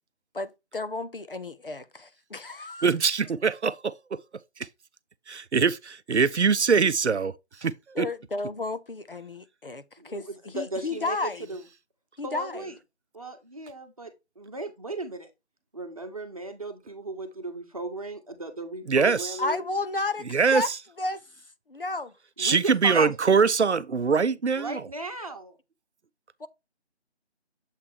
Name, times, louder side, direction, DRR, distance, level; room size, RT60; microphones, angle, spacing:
voice 1, 0.3-2.9 8.0-10.3 10.5-11.5 12.2-12.7 19.4-20.7 21.0-21.2 21.7-22.1 22.9-23.1 26.4-26.5, left 3 dB, 55° left, 0.6 m, -32 dB
voice 2, 2.8-3.9 4.6-4.7 5.3-7.3 7.6-8.1 18.9-19.4 20.3-20.8 22.4-24.9, right 5 dB, 80° right, 0.6 m, -23 dB
voice 3, 10.0-11.6 12.2-12.8 13.1-15.3 15.7-19.6 22.4-23.1 24.6-25.6, right 2 dB, 30° right, 1.0 m, -36 dB
7.3 x 3.1 x 4.4 m
figure-of-eight pair, 160°, 34 cm